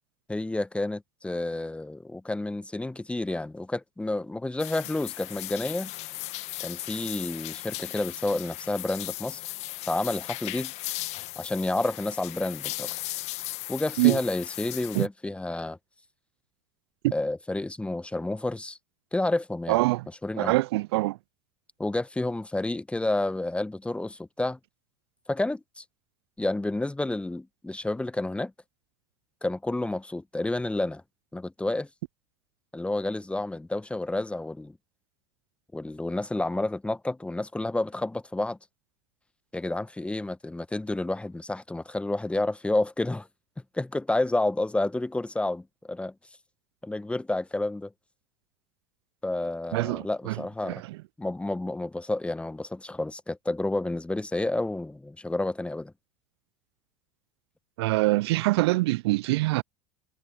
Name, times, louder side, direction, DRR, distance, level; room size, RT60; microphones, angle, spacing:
voice 1, 0.3-5.9 6.6-9.5 9.9-10.7 11.4-12.9 13.7-15.8 17.1-18.8 19.1-19.8 20.2-20.5 21.8-24.6 25.3-25.8 26.4-28.5 29.4-31.0 31.3-31.9 32.7-34.8 35.7-38.6 39.5-43.3 43.7-46.1 46.8-47.9 49.2-50.8 51.2-55.9, left 2 dB, 5° left, 1.4 m, -30 dB
sound 1, 4.6-15.1, left 17 dB, 50° left, 2.3 m, -37 dB
voice 2, 19.7-20.1 20.4-21.2 49.7-50.4 50.7-51.0 57.8-59.6, right 20 dB, 60° right, 0.6 m, -24 dB
figure-of-eight pair, 75°, 15 cm